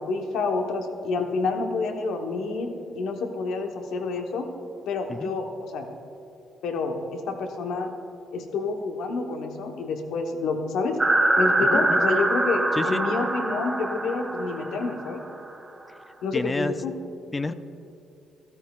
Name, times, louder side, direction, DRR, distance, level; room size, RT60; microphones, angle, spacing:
voice 1, 0.0-2.7 2.9-4.5 4.9-5.9 6.6-7.9 8.3-11.0 11.4-15.2 16.2-16.9, left 3 dB, 80° left, 4 dB, 1.0 m, -28 dB
sound 1, 11.0-15.3, right 2 dB, 20° right, 0.8 m, -24 dB
voice 2, 12.7-13.0 16.3-16.7 17.3-17.5, left 3 dB, 25° left, 12 dB, 0.4 m, -29 dB
14.0 x 13.0 x 2.4 m, 2.6 s
cardioid pair, 90°, 0 cm